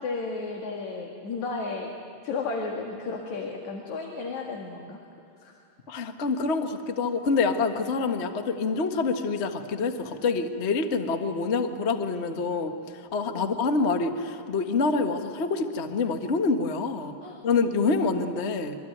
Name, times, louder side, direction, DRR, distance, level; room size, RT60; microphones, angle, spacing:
voice 1, 0.0-1.9 2.2-5.0 5.4-5.5 13.4-13.6 17.2-17.4 17.8-18.2, left 4 dB, 60° left, 1 dB, 3.2 m, -33 dB
voice 2, 5.9-12.7 13.1-17.1 17.4-18.8, left 4 dB, 45° left, 6 dB, 0.8 m, -26 dB
26.5 x 24.0 x 9.3 m, 2.8 s
omnidirectional pair, 3.8 m